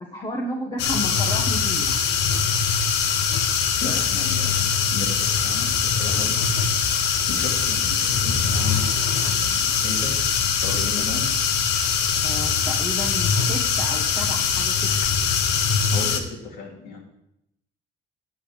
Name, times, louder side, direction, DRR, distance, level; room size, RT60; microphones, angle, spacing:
voice 1, 0.1-2.1 12.2-14.9, equal, 25° left, -2 dB, 1.6 m, -32 dB
sound 1, 0.8-16.2, left 6 dB, 90° left, 1.1 m, -22 dB
voice 2, 3.8-6.7 7.3-8.9 9.2-10.1 10.5-11.3 15.9-17.0, left 4 dB, 75° left, 0 dB, 3.4 m, -35 dB
9.4 x 5.7 x 8.3 m, 0.80 s
cardioid pair, 110°, 17 cm